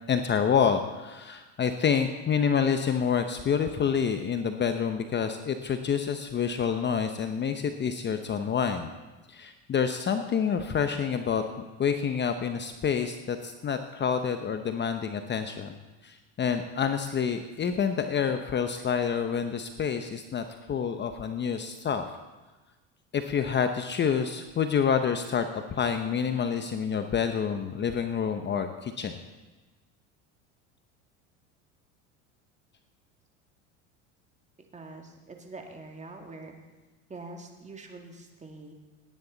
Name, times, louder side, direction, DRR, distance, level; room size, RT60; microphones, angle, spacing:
voice 1, 0.1-8.9 9.3-11.4 11.8-15.8 16.0-22.2 23.1-29.2, left 7 dB, 30° left, 7 dB, 0.9 m, -28 dB
voice 2, 34.7-36.6 37.1-38.7, right 3 dB, 20° right, 2 dB, 2.2 m, -44 dB
18.0 x 9.8 x 4.0 m, 1.2 s
supercardioid pair, 95°, 37 cm